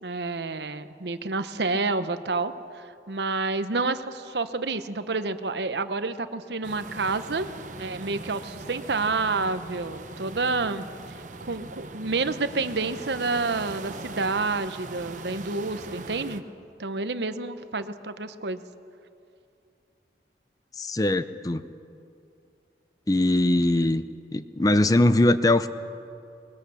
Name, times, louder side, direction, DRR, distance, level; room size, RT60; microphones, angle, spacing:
voice 1, 0.0-7.5 7.8-10.8 11.5-16.4 16.8-18.6, right 3 dB, 75° right, 11 dB, 0.9 m, -29 dB
sound 1, 6.6-16.4, right 2 dB, 45° right, 0.9 m, -41 dB
voice 2, 20.8-21.6 23.1-24.0 24.3-25.7, left 1 dB, 20° left, 12 dB, 0.5 m, -21 dB
23.0 x 20.5 x 7.0 m, 2.6 s
head